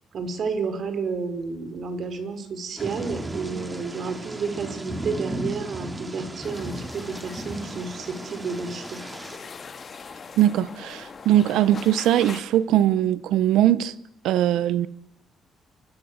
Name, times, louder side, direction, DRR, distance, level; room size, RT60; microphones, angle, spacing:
voice 1, 0.1-9.0, right 4 dB, 60° right, 5.2 m, -31 dB
Thunder / Rain, 2.8-9.4, right 1 dB, 20° right, 3.5 m, -35 dB
sound 1, 6.4-12.4, left 5 dB, 40° left, 3.2 m, -42 dB
voice 2, 10.4-13.9 14.2-14.9, right 12 dB, 85° right, 1.1 m, -21 dB
29.5 x 24.5 x 8.2 m
cardioid pair, 90°, 0 cm